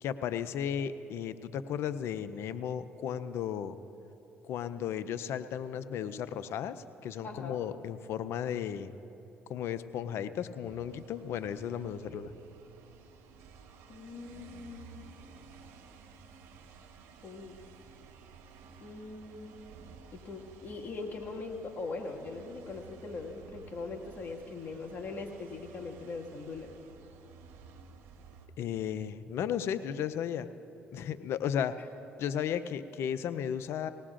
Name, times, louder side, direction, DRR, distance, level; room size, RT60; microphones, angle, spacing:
voice 1, 0.0-3.8 4.4-8.9 9.5-12.3 28.6-30.5 30.9-31.8 32.2-33.9, left 9 dB, 70° left, 12 dB, 0.5 m, -34 dB
voice 2, 7.2-7.6 12.1-12.2 13.9-15.1 17.2-17.6 18.8-19.5 20.1-26.7, left 3 dB, 45° left, 0 dB, 1.9 m, -41 dB
sound 1, 10.6-28.5, right 5 dB, 80° right, 1.0 m, -54 dB
20.0 x 17.5 x 2.5 m, 2.9 s
supercardioid pair, 65°, 4 cm